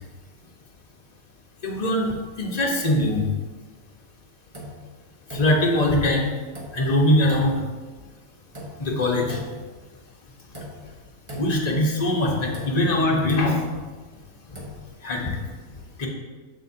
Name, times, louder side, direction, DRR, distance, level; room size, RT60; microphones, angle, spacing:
voice 1, 1.6-2.1 2.4-3.2 5.3-6.3 6.7-7.6 8.8-9.4 11.4-13.6 15.0-15.3 16.0-16.1, left 1 dB, 30° left, -2 dB, 1.1 m, -21 dB
sound 1, 4.5-4.9 5.3-5.8 6.5-6.9 7.3-7.7 8.5-8.9 9.3-9.8 10.5-10.9 11.3-11.8 12.5-14.0 14.4-14.8, left 1 dB, 25° right, 1.1 m, -38 dB
7.4 x 6.8 x 2.8 m, 1.4 s
omnidirectional pair, 1.5 m